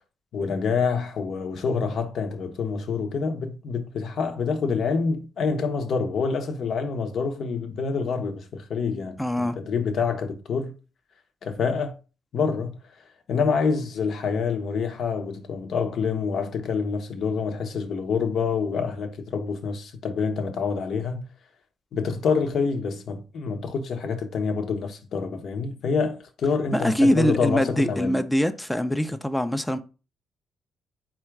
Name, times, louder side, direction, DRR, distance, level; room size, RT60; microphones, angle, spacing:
voice 1, 0.3-10.7 11.4-12.0 12.3-12.8 13.3-21.2 21.9-28.2, left 5 dB, 60° left, 0.9 m, -27 dB
voice 2, 9.2-9.6 26.7-29.8, equal, 5° left, 0.5 m, -23 dB
4.3 x 2.4 x 4.5 m
cardioid pair, 90°, 0 cm